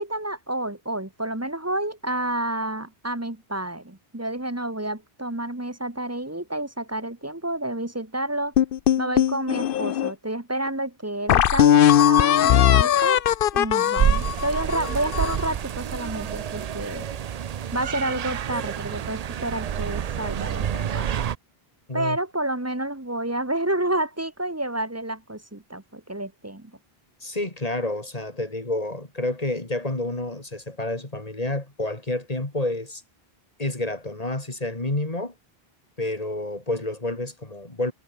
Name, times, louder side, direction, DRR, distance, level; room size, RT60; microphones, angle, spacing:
voice 1, 0.0-8.5 9.0-13.2 13.5-17.0 17.7-21.1 21.9-26.7, right 1 dB, 15° right, 1.5 m, -29 dB
sound 1, 8.6-10.1 10.7-10.8 11.3-15.5, left 10 dB, 65° left, 0.8 m, -19 dB
sound 2, 14.0-21.4, right 9 dB, 50° right, 0.5 m, -28 dB
voice 2, 27.2-33.0 33.6-35.3 36.0-37.9, left 2 dB, 40° left, 2.9 m, -29 dB
omnidirectional pair, 1.0 m